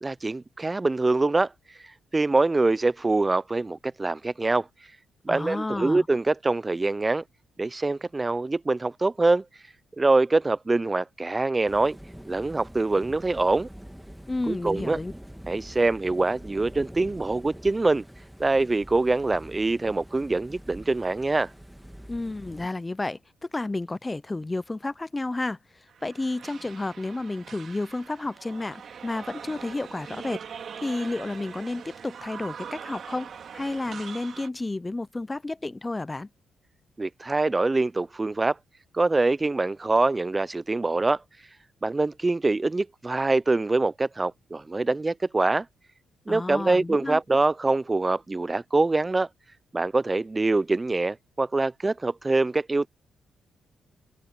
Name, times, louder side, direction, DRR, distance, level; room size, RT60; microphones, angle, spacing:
voice 1, 0.0-1.5 2.1-4.7 5.2-7.2 7.6-9.4 10.0-12.0 12.3-13.7 14.5-15.0 15.5-18.0 18.4-21.5 37.0-38.6 38.9-41.2 41.8-45.7 46.3-49.3 49.7-52.9, right 3 dB, 25° right, 0.6 m, -24 dB
voice 2, 5.3-6.1 14.3-15.1 22.1-30.4 30.8-36.3 46.3-47.2, left 2 dB, 20° left, 0.6 m, -31 dB
sound 1, 11.7-22.7, equal, 5° right, 1.8 m, -45 dB
sound 2, 25.9-34.5, right 7 dB, 60° right, 3.1 m, -42 dB
open air
cardioid pair, 65°, 0 cm